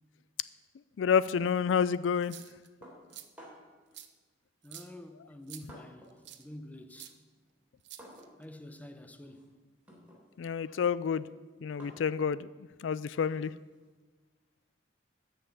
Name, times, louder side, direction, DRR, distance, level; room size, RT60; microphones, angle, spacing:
voice 1, 1.0-2.4 10.4-11.3 11.6-12.5 12.8-13.5, left 7 dB, 90° left, 0.4 m, -29 dB
sound 1, 2.1-2.7 3.1-3.3 3.9-4.1 4.6-4.9 5.5-5.6 6.2-6.4 7.0-7.1 7.8-8.4, right 12 dB, 70° right, 0.8 m, -48 dB
sound 2, 2.8-3.8 4.7-6.3 6.6-13.9, equal, 5° right, 3.3 m, -56 dB
voice 2, 4.6-6.1 6.4-7.1 8.4-9.6, left 1 dB, 10° left, 0.8 m, -48 dB
13.0 x 5.8 x 8.6 m
head